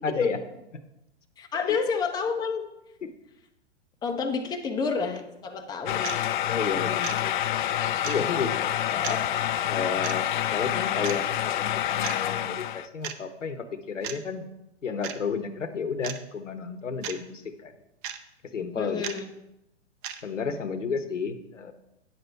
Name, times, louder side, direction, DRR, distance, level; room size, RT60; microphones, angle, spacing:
voice 1, 0.0-0.4 1.5-1.8 3.0-3.1 6.5-7.3 8.1-9.2 9.6-14.5 14.8-17.7 18.5-19.1 20.2-21.7, left 5 dB, 90° left, 10 dB, 1.0 m, -32 dB
voice 2, 1.4-2.6 4.0-6.2 8.2-8.5 18.8-19.3, left 5 dB, 10° left, 3 dB, 0.7 m, -29 dB
sound 1, 5.2-5.3 6.0-6.2 7.0-7.2 8.0-8.2 9.0-9.2 10.0-10.2 11.0-11.2 12.0-12.2 13.0-13.1 14.0-14.2 15.0-15.2 16.0-16.2 17.0-17.2 18.0-18.2 19.0-19.2 20.0-20.2, right 9 dB, 45° right, 0.8 m, -34 dB
sound 2, 5.9-12.9, left 12 dB, 45° left, 0.4 m, -27 dB
9.3 x 6.9 x 4.5 m, 0.89 s
hypercardioid pair, 115°, 36 cm